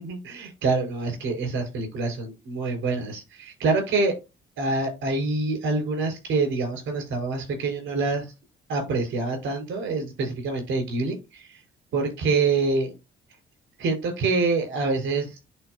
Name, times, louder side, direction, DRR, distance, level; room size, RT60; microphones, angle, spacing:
voice 1, 0.0-4.1 4.6-8.3 8.7-11.6 11.9-12.9 13.8-15.4, right 3 dB, 80° right, 4 dB, 4.1 m, -26 dB
11.0 x 3.7 x 2.5 m, 0.25 s
cardioid pair, 90°, 20 cm